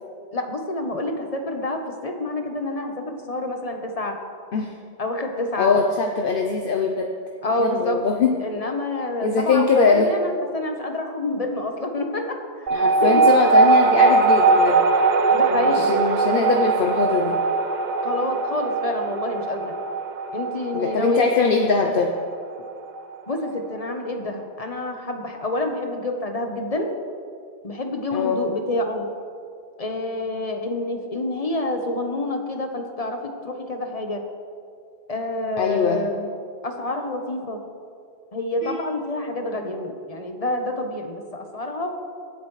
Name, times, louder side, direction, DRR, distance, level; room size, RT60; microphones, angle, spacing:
voice 1, 0.3-4.2 5.0-5.8 7.4-8.0 8.4-12.7 13.0-13.1 15.3-15.9 18.0-19.7 20.3-21.9 23.3-26.9 27.6-29.1 29.8-34.2 35.1-36.3 36.6-37.6 38.3-41.9, left 2 dB, 35° left, 4 dB, 1.1 m, -28 dB
voice 2, 5.6-7.1 7.6-8.3 9.2-10.1 12.7-14.8 15.5-17.4 20.7-22.1 28.1-28.4 35.6-36.0 38.6-38.8, left 4 dB, 60° left, 2 dB, 0.9 m, -21 dB
sound 1, 12.7-23.6, right 4 dB, 55° right, 0.7 m, -20 dB
22.0 x 8.0 x 3.2 m, 2.3 s
omnidirectional pair, 1.0 m